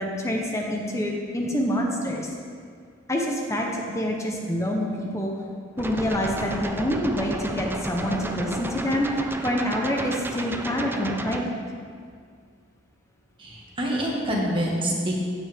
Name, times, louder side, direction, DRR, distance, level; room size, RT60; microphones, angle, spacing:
voice 1, 0.0-2.3 3.1-5.3 5.8-9.1 9.4-11.5, equal, 15° left, 0 dB, 0.9 m, -26 dB
sound 1, 5.8-11.4, right 1 dB, 10° right, 0.4 m, -33 dB
voice 2, 13.4-15.3, equal, 25° right, -3 dB, 1.7 m, -26 dB
16.5 x 6.0 x 3.5 m, 2.1 s
head